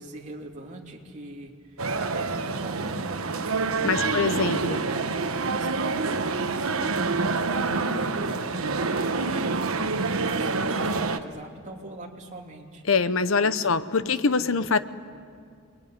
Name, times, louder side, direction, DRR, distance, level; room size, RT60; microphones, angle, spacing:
voice 1, 0.0-3.4 3.9-12.8 13.4-14.7, right 2 dB, 35° right, -1 dB, 2.9 m, -41 dB
sound 1, 1.8-11.2, right 4 dB, 85° right, 1.1 m, -27 dB
voice 2, 3.8-4.8 12.9-14.8, left 4 dB, 70° left, 13 dB, 0.9 m, -24 dB
sound 2, 4.7-7.8, left 1 dB, 35° left, 3.9 m, -50 dB
28.5 x 21.0 x 9.6 m, 2.2 s
head